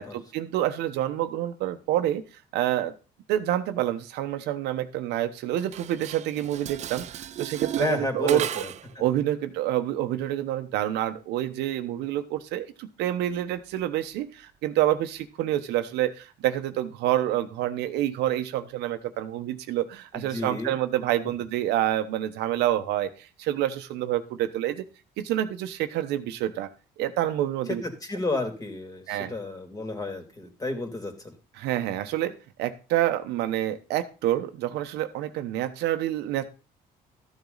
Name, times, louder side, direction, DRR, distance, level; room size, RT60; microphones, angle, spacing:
voice 1, 0.0-2.2 2.5-2.9 3.3-8.5 9.0-24.8 25.2-26.7 27.0-27.8 29.1-29.3 31.6-32.3 32.6-36.5, right 13 dB, 90° right, 8 dB, 1.1 m, -27 dB
Dishes pots and pans, 5.6-8.9, right 10 dB, 45° right, 0.4 m, -35 dB
voice 2, 7.8-8.7 20.1-20.8 27.7-31.4, left 2 dB, 20° left, 4 dB, 2.7 m, -31 dB
13.5 x 7.3 x 4.0 m, 0.34 s
cardioid pair, 110°, 17 cm